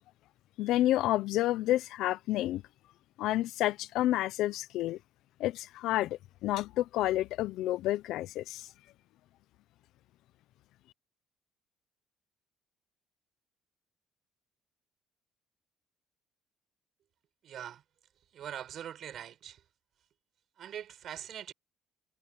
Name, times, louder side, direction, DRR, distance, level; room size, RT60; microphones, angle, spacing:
voice 1, 0.6-2.6 3.2-5.0 5.4-8.7, left 14 dB, 75° left, 0.7 m, -30 dB
voice 2, 17.4-17.8 18.3-19.6 20.6-21.5, right 10 dB, 55° right, 7.5 m, -42 dB
cardioid pair, 125°, 0 cm